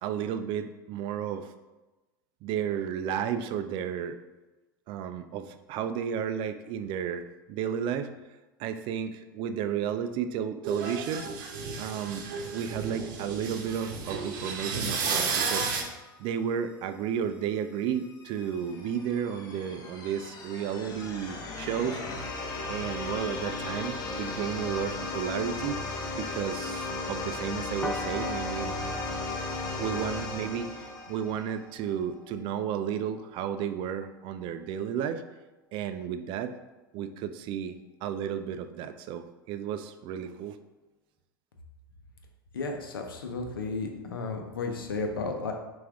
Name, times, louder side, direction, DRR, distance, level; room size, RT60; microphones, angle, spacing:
voice 1, 0.0-1.5 2.4-4.2 4.9-11.3 11.8-12.2 12.5-15.7 16.2-22.3 22.7-25.8 26.2-28.7 29.8-35.2 35.7-36.5 36.9-40.6, right 8 dB, 45° right, 10 dB, 0.4 m, -33 dB
sound 1, 10.6-15.8, right 4 dB, 65° right, 0.8 m, -32 dB
sound 2, 17.8-31.6, left 3 dB, 35° left, 0.8 m, -36 dB
sound 3, 27.8-33.7, left 1 dB, 10° left, 0.5 m, -41 dB
voice 2, 42.5-45.5, left 3 dB, 85° left, 3 dB, 0.7 m, -33 dB
5.7 x 2.6 x 3.5 m, 1.1 s
hypercardioid pair, 90°, 12 cm